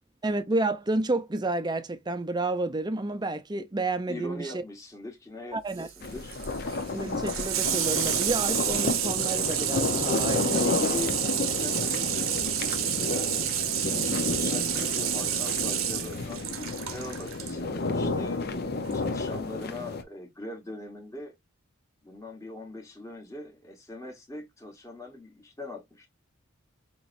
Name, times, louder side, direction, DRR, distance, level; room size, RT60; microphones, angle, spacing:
voice 1, 0.2-4.5 5.5-5.9 6.9-10.6, right 2 dB, 20° right, 0.5 m, -30 dB
voice 2, 4.1-6.4 10.1-21.3 22.0-26.1, left 2 dB, 15° left, 1.2 m, -41 dB
Water tap faucet / Sink (filling or washing), 5.7-17.5 18.9-19.0, right 11 dB, 80° right, 0.8 m, -30 dB
sound 1, 6.0-20.0, left 3 dB, 50° left, 0.7 m, -31 dB
5.7 x 3.0 x 2.5 m
head